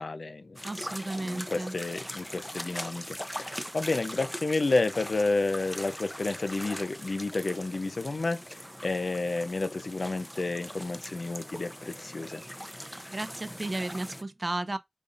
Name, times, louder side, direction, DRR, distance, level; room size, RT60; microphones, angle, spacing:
voice 1, 0.0-0.6 1.2-12.4, left 3 dB, 90° left, 0.5 m, -31 dB
sound 1, 0.6-14.2, equal, 5° left, 0.6 m, -41 dB
voice 2, 0.6-1.8 12.9-14.8, right 2 dB, 55° right, 0.5 m, -34 dB
5.1 x 2.5 x 2.5 m
wide cardioid pair, 45°, 0 cm